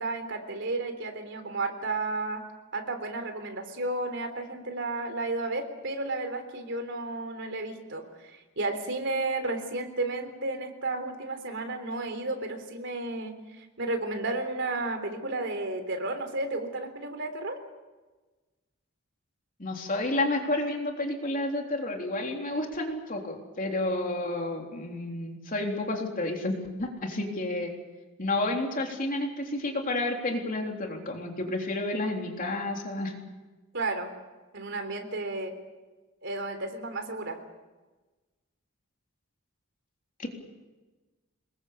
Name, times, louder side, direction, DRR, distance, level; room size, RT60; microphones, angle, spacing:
voice 1, 0.0-2.4 2.7-17.6 33.7-34.1 34.5-35.5 36.2-37.4, right 2 dB, 60° right, 7 dB, 3.6 m, -32 dB
voice 2, 19.6-27.7 28.2-33.1 40.2-40.3, left 2 dB, 40° left, 2 dB, 3.6 m, -30 dB
26.0 x 21.5 x 7.0 m, 1.2 s
head